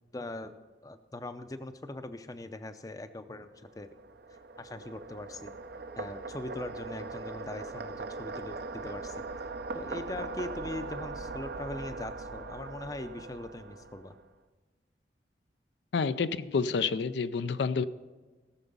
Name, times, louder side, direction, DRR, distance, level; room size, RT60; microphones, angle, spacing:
voice 1, 0.1-0.6 0.8-3.9 4.6-5.6 6.0-9.2 9.7-14.1, left 2 dB, 20° left, 0.5 m, -41 dB
sound 1, 3.6-14.3, right 3 dB, 60° right, 0.6 m, -40 dB
voice 2, 15.9-17.8, left 5 dB, 80° left, 0.4 m, -29 dB
17.5 x 6.9 x 5.4 m
head